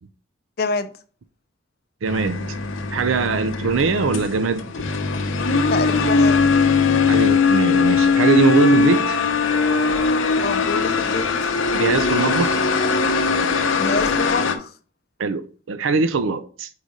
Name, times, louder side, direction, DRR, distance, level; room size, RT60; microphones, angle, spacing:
voice 1, 0.6-0.9 5.7-6.4 10.4-11.5 13.8-14.7, left 3 dB, 50° left, 0.6 m, -26 dB
voice 2, 2.0-2.5 2.9-4.7 7.1-9.2 11.7-12.7 15.2-16.7, right 4 dB, 85° right, 0.5 m, -22 dB
sound 1, 2.1-14.6, left 4 dB, 85° left, 0.7 m, -20 dB
4.8 x 4.0 x 5.0 m
head